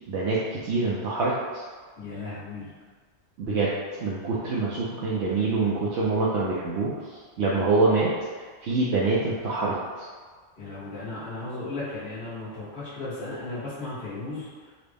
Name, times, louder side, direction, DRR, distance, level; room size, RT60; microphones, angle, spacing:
voice 1, 0.1-1.6 3.5-3.7 4.0-6.9 7.4-8.1 8.6-10.1, right 3 dB, 70° right, -7 dB, 0.8 m, -25 dB
voice 2, 2.0-2.7 10.6-14.5, left 2 dB, 55° left, -11 dB, 1.7 m, -35 dB
3.9 x 2.0 x 3.3 m, 1.5 s
omnidirectional pair, 1.2 m